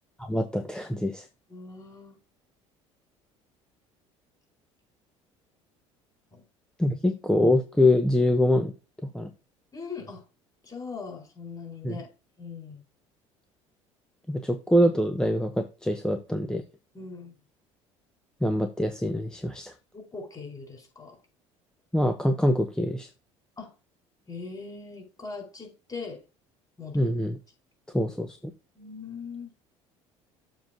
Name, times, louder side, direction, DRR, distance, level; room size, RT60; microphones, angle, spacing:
voice 1, 0.2-1.3 6.8-8.7 9.1-9.3 11.8-12.0 14.3-16.6 18.4-19.7 21.9-23.1 26.9-27.4 27.9-28.5, left 1 dB, 5° left, 0.9 m, -24 dB
voice 2, 1.5-2.2 6.3-6.4 6.8-7.0 9.7-10.2 10.6-12.1 12.4-12.8 16.9-17.3 19.9-21.2 23.6-23.7 24.3-26.2 26.8-27.1 28.0-28.1 28.8-29.5, left 4 dB, 20° left, 4.4 m, -40 dB
7.3 x 3.8 x 6.1 m
figure-of-eight pair, 60°, 17 cm